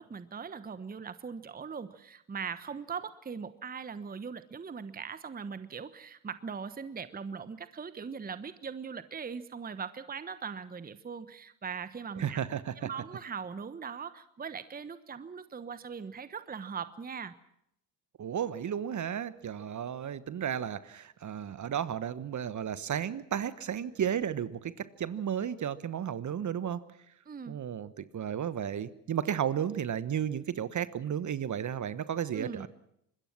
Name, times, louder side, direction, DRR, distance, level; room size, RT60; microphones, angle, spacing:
voice 1, 0.0-12.4 12.8-17.3 27.3-27.6 32.3-32.7, right 6 dB, 20° right, 13 dB, 1.1 m, -40 dB
voice 2, 12.2-12.9 18.2-26.8 27.5-32.7, right 9 dB, 35° right, 15 dB, 1.3 m, -33 dB
25.5 x 21.0 x 6.1 m, 0.75 s
hypercardioid pair, 70°, 49 cm